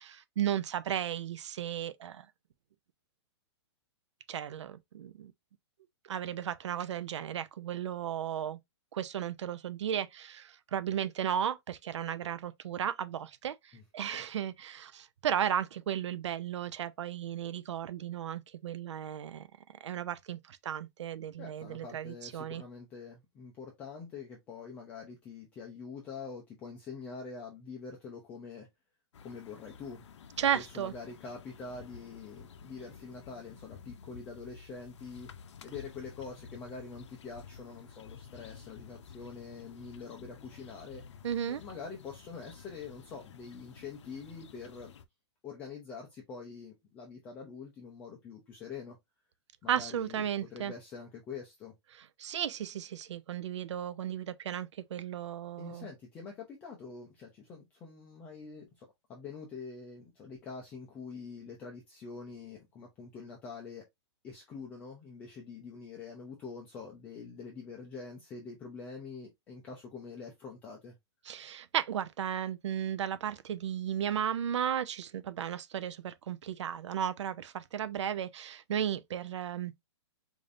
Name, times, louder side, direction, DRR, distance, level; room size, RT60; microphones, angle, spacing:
voice 1, 0.0-2.3 4.3-5.3 6.1-8.6 8.9-19.5 19.8-22.6 30.4-30.9 41.2-41.6 49.7-50.7 52.2-55.9 71.3-79.7, right 9 dB, 75° right, 0.5 m, -35 dB
voice 2, 21.4-28.7 29.2-30.0 30.5-35.3 35.6-41.0 41.5-44.9 45.4-49.0 49.6-50.2 50.5-51.7 55.6-63.8 64.2-70.9, left 5 dB, 10° left, 0.4 m, -45 dB
sound 1, 29.1-45.1, left 6 dB, 75° left, 0.6 m, -52 dB
5.0 x 2.6 x 2.5 m
hypercardioid pair, 175°, 15 cm